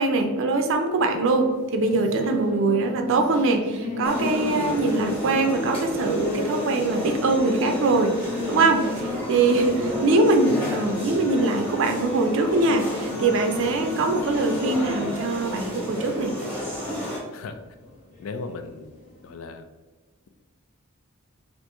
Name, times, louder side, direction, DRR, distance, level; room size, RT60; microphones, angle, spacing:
voice 1, 0.0-8.1 8.5-16.3, right 3 dB, 65° right, 4 dB, 0.4 m, -22 dB
sound 1, 0.9-19.3, left 3 dB, 40° left, 1.1 m, -35 dB
sound 2, 4.1-17.2, left 1 dB, 5° left, 1.0 m, -31 dB
voice 2, 9.6-10.0 17.3-17.6 18.2-19.0 19.2-19.7, left 3 dB, 70° left, 8 dB, 0.4 m, -37 dB
2.9 x 2.6 x 3.3 m, 1.3 s
head